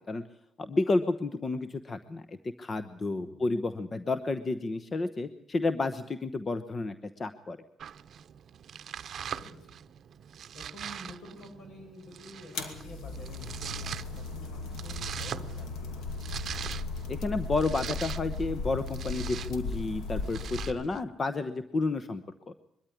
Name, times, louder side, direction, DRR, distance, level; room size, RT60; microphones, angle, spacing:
voice 1, 0.6-7.6 17.1-22.7, left 3 dB, 35° left, 12 dB, 1.0 m, -31 dB
Domestic sounds home sounds, 7.8-21.0, right 8 dB, 60° right, 0.8 m, -42 dB
voice 2, 9.2-9.7 10.5-14.5 14.8-16.1, left 1 dB, 70° left, 4 dB, 7.3 m, -48 dB
sound 1, 12.5-20.7, left 3 dB, 90° left, 2.6 m, -37 dB
22.5 x 13.0 x 10.0 m, 0.78 s
cardioid pair, 90°, 0 cm